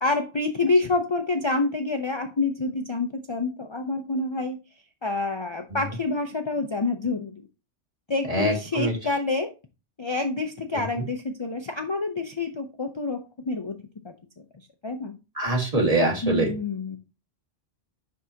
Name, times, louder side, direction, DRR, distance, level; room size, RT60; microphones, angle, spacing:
voice 1, 0.0-4.6 5.0-7.3 8.1-9.5 10.0-13.8 14.0-14.1 14.8-15.1 16.2-17.0, left 3 dB, 30° left, 5 dB, 0.6 m, -27 dB
voice 2, 8.3-8.9 10.8-10.9 15.4-16.5, right 1 dB, 35° right, 0 dB, 1.8 m, -24 dB
10.5 x 3.7 x 2.8 m, 0.29 s
omnidirectional pair, 1.1 m